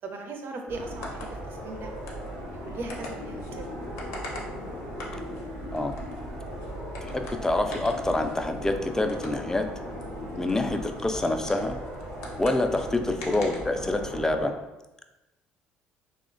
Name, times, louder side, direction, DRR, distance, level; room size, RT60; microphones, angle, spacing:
voice 1, 0.0-2.0 2.5-3.7 12.9-13.0, right 3 dB, 55° right, 3 dB, 0.5 m, -39 dB
sound 1, 0.7-14.3, left 1 dB, 80° left, 0.6 m, -45 dB
sound 2, 0.7-14.5, equal, 85° right, 0.7 m, -38 dB
voice 2, 7.1-9.6 10.4-11.8 12.4-14.5, left 2 dB, 10° left, 6 dB, 0.3 m, -26 dB
3.1 x 2.1 x 2.5 m, 1.0 s
hypercardioid pair, 60°, 4 cm